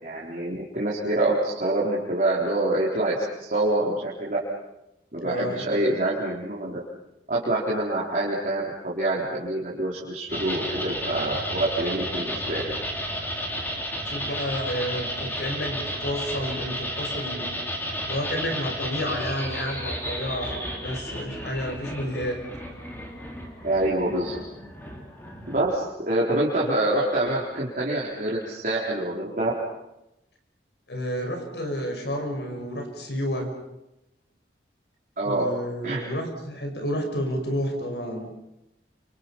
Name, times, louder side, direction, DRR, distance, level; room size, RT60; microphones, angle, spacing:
voice 1, 0.0-4.4 5.1-6.8 7.3-12.6 23.6-24.4 25.5-29.5 35.2-35.4 35.8-36.0, right 1 dB, 45° right, -6 dB, 4.1 m, -26 dB
voice 2, 5.2-5.6 14.0-17.5 18.0-22.4 30.9-33.5 35.2-38.3, equal, 70° left, 4 dB, 5.6 m, -30 dB
sound 1, 10.3-25.8, equal, 10° left, 3.8 m, -33 dB
29.5 x 26.0 x 5.7 m, 0.91 s
head